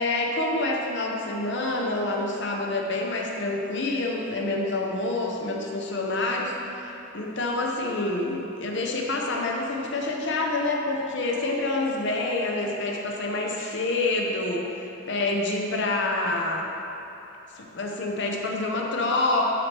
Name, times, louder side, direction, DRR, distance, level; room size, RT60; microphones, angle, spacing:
voice 1, 0.0-16.7 17.5-19.4, left 2 dB, 60° left, 0 dB, 0.8 m, -27 dB
11.5 x 4.5 x 3.4 m, 3.0 s
head